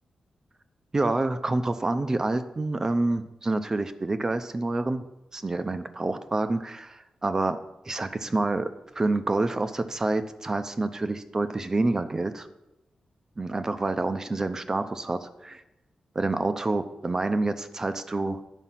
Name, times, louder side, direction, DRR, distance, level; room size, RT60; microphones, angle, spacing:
voice 1, 0.9-5.0 5.3-7.6 7.9-12.5 13.4-15.6 16.1-18.4, right 2 dB, 25° right, 10 dB, 0.5 m, -27 dB
11.0 x 5.0 x 5.7 m, 0.95 s
wide cardioid pair, 140°, 2 cm